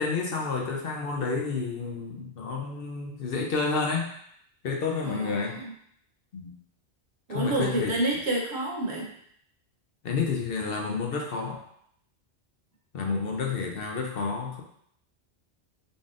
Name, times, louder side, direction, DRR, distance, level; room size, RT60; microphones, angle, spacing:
voice 1, 0.0-4.1 4.6-5.6 6.3-6.5 7.3-7.9 10.0-11.6 12.9-14.6, left 4 dB, 60° left, 1 dB, 0.8 m, -30 dB
voice 2, 5.0-5.7 7.3-9.1, right 1 dB, 80° right, -2 dB, 1.2 m, -29 dB
3.9 x 3.4 x 2.5 m, 0.67 s
omnidirectional pair, 1.1 m